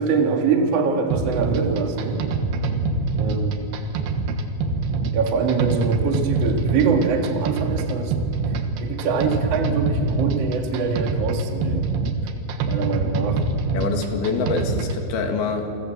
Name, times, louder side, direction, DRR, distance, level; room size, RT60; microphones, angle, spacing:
voice 1, 0.0-2.3 3.2-3.7 5.1-8.1 8.8-11.9 12.6-13.4, right 5 dB, 50° right, 4 dB, 2.5 m, -23 dB
sound 1, 1.1-15.0, right 3 dB, 90° right, 3.4 m, -25 dB
voice 2, 13.7-15.8, left 4 dB, 75° left, 4 dB, 4.0 m, -25 dB
28.5 x 21.0 x 7.8 m, 2.7 s
omnidirectional pair, 4.4 m